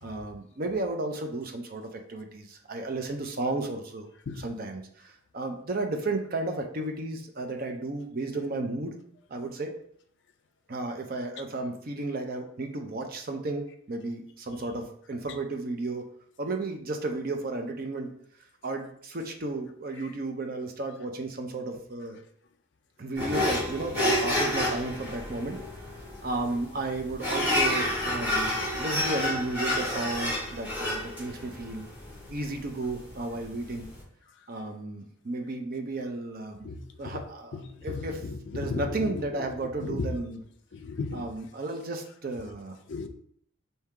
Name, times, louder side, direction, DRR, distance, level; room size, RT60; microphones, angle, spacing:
voice 1, 0.0-9.0 9.3-9.7 10.7-16.1 16.4-18.2 18.6-22.2 23.0-25.6 26.2-31.9 32.3-33.9 34.5-36.7 37.0-40.4 41.1-42.8, right 2 dB, 45° right, 4 dB, 0.6 m, -33 dB
sound 1, 23.2-34.0, left 1 dB, 10° right, 1.9 m, -30 dB
voice 2, 36.6-37.2 37.5-37.6 38.6-38.8 39.8-40.1 40.8-41.3 42.9-43.1, left 4 dB, 55° left, 7 dB, 0.4 m, -34 dB
4.4 x 2.8 x 3.6 m, 0.65 s
head